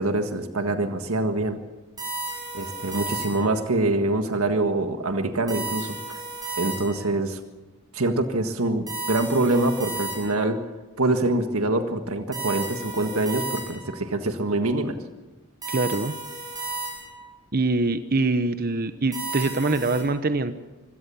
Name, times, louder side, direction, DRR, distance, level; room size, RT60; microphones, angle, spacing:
voice 1, 0.0-1.6 2.5-6.2 6.6-7.4 7.9-10.6 11.0-15.0, right 2 dB, 80° right, 7 dB, 1.7 m, -25 dB
sound 1, 2.0-3.6 5.5-7.2 8.9-10.5 12.3-14.0 15.6-17.3 19.1-20.0, right 3 dB, 20° right, 7.2 m, -33 dB
voice 2, 15.7-16.1 17.5-20.5, right 2 dB, 45° right, 10 dB, 0.9 m, -24 dB
25.5 x 17.0 x 7.1 m, 1.2 s
head